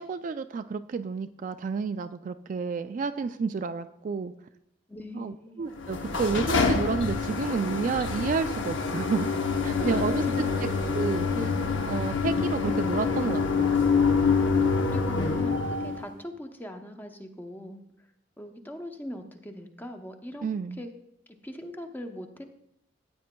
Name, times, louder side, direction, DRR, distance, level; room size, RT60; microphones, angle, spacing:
voice 1, 0.0-4.3 5.1-9.3 9.6-10.2 10.6-11.3 11.9-13.7 20.4-20.8, right 5 dB, 45° right, 9 dB, 0.3 m, -30 dB
voice 2, 4.9-5.6 9.7-10.8 11.3-11.5 14.2-17.8 18.4-20.5 20.8-20.9 21.3-22.4, equal, 10° left, 5 dB, 0.7 m, -40 dB
sound 1, 5.8-16.1, left 5 dB, 75° left, 0.8 m, -26 dB
14.5 x 8.7 x 2.2 m, 0.79 s
head